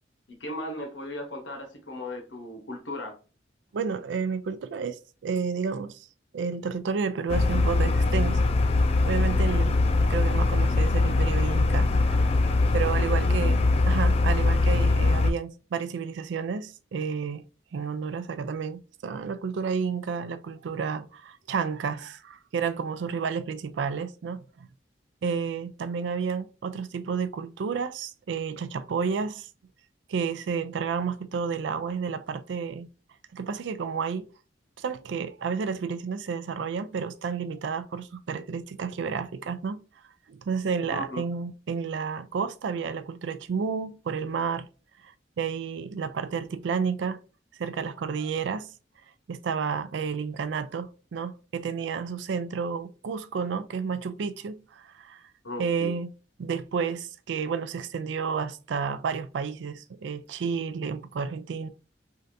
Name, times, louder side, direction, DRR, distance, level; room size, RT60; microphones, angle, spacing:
voice 1, 0.3-3.2 12.9-13.4 40.9-41.2 55.4-55.9, left 1 dB, 80° left, 1.0 m, -37 dB
voice 2, 3.7-6.0 6.3-8.4 8.7-9.8 10.1-12.3 12.7-17.4 17.7-24.7 25.2-29.5 30.1-32.9 33.3-34.3 34.8-39.8 40.3-44.7 45.0-47.2 47.6-48.7 49.3-55.2 55.6-56.1 56.4-61.7, right 6 dB, 75° right, 0.4 m, -31 dB
sound 1, 7.3-15.3, left 2 dB, 35° left, 0.3 m, -22 dB
3.4 x 2.5 x 2.6 m
head